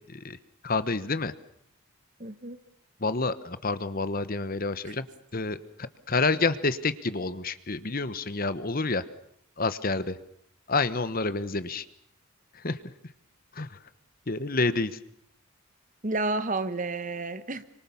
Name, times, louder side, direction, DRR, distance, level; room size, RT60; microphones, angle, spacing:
voice 1, 0.6-1.3 3.0-5.1 5.3-9.0 9.6-10.2 10.7-11.8 12.6-12.8 13.5-13.8 14.3-14.9, left 3 dB, 40° left, 13 dB, 1.1 m, -28 dB
voice 2, 2.2-2.6 4.8-4.9 16.0-17.6, right 2 dB, 35° right, 12 dB, 1.2 m, -31 dB
27.5 x 25.0 x 7.1 m, 0.70 s
head